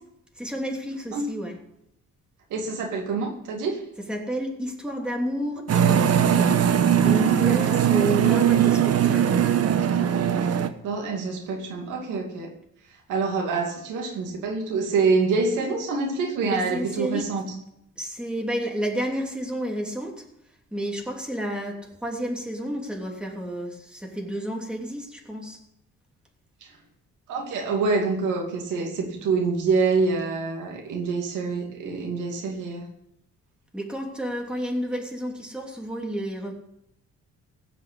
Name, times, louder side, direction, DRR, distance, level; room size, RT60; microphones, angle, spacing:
voice 1, 0.4-1.6 4.1-6.5 7.0-9.4 16.5-17.6 18.0-20.2 20.7-25.6 33.7-36.5, equal, 5° right, 3.1 m, -31 dB
voice 2, 2.5-3.8 10.8-12.5 13.1-17.5 26.6-26.7 27.3-32.9, right 4 dB, 90° right, 2.4 m, -26 dB
sound 1, 5.7-10.7, right 9 dB, 55° right, 1.1 m, -20 dB
16.0 x 5.9 x 8.5 m
cardioid pair, 90°, 30 cm